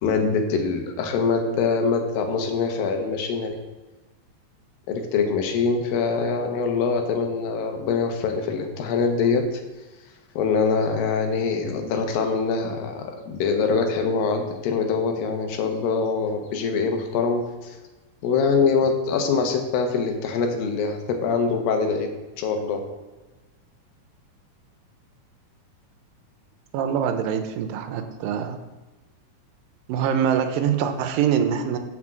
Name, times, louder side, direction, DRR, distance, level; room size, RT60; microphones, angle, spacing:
voice 1, 0.0-3.6 4.9-9.6 10.4-17.8 18.2-22.1 22.4-22.8, left 5 dB, 85° left, 4 dB, 2.8 m, -24 dB
voice 2, 26.7-28.6 29.9-31.8, right 8 dB, 85° right, 7 dB, 2.5 m, -24 dB
6.2 x 6.1 x 7.3 m, 1.1 s
omnidirectional pair, 4.0 m